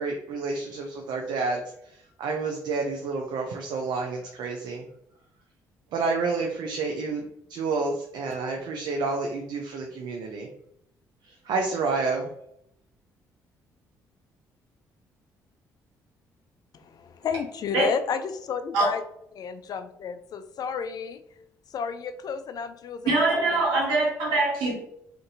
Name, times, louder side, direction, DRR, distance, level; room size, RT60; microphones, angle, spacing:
voice 1, 0.0-4.9 5.9-10.5 11.3-12.3, right 4 dB, 65° right, 1 dB, 0.4 m, -29 dB
voice 2, 16.7-19.0 19.4-21.2 21.7-23.1 24.3-24.4, left 6 dB, 55° left, 9 dB, 0.3 m, -32 dB
voice 3, 23.0-24.7, right 3 dB, 80° right, -4 dB, 1.2 m, -23 dB
2.6 x 2.5 x 2.7 m, 0.75 s
hypercardioid pair, 55°, 8 cm